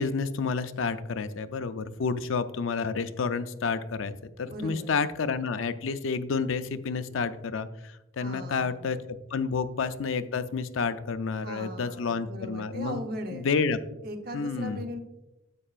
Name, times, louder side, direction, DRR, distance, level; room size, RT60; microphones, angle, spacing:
voice 1, 0.0-9.0 9.3-13.0 13.3-13.8 14.3-14.8, left 5 dB, 65° left, 11 dB, 0.5 m, -30 dB
voice 2, 4.4-5.0 8.2-8.9 11.3-13.5 14.0-15.0, equal, 45° right, 5 dB, 0.9 m, -39 dB
9.9 x 7.6 x 2.4 m, 0.97 s
head